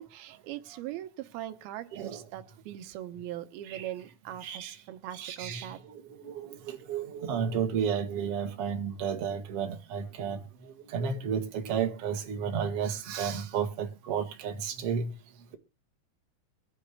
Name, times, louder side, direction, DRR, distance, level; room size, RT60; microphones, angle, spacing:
voice 1, 0.0-5.8, right 13 dB, 85° right, 2.8 m, -41 dB
voice 2, 4.4-4.7 5.2-5.7 6.2-6.6 6.9-10.4 10.9-15.0, right 7 dB, 50° right, 2.4 m, -32 dB
24.0 x 10.0 x 2.3 m
omnidirectional pair, 4.2 m